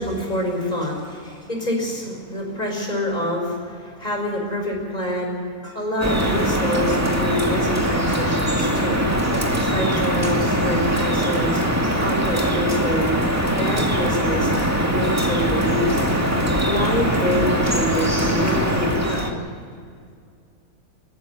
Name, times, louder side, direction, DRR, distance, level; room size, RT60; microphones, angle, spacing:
voice 1, 0.0-9.0 9.6-11.6 12.0-13.2 13.5-14.5 14.9-16.1 16.6-19.2, equal, 25° left, 1 dB, 6.0 m, -26 dB
Drip, 6.0-19.3, equal, 10° right, 2.2 m, -21 dB
21.0 x 14.0 x 9.3 m, 2.2 s
omnidirectional pair, 1.6 m